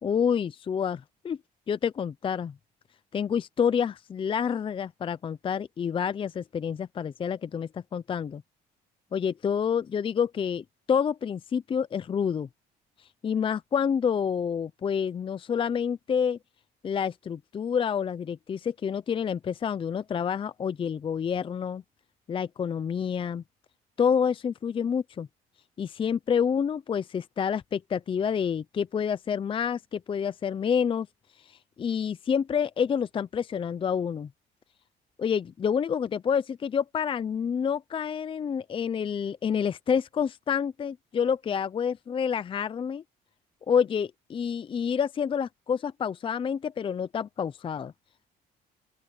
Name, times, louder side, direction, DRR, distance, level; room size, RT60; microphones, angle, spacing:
voice 1, 0.0-1.4 1.7-2.5 3.1-8.4 9.1-12.5 13.2-16.4 16.8-21.8 22.3-23.4 24.0-25.3 25.8-31.1 31.5-34.3 35.2-43.0 43.7-47.9, left 7 dB, 30° left, 0.6 m, -28 dB
open air
cardioid pair, 110°, 17 cm